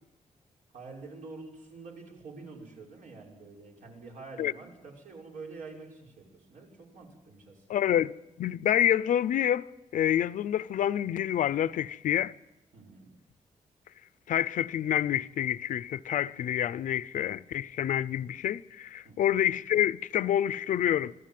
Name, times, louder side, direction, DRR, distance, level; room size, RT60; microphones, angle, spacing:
voice 1, 0.7-7.8 12.7-13.1 19.0-19.3, right 3 dB, 80° right, 6.5 m, -47 dB
voice 2, 7.7-8.1 8.4-9.7 9.9-12.3 14.3-21.1, left 11 dB, 85° left, 0.7 m, -27 dB
26.5 x 15.0 x 7.7 m
wide cardioid pair, 160°, 13 cm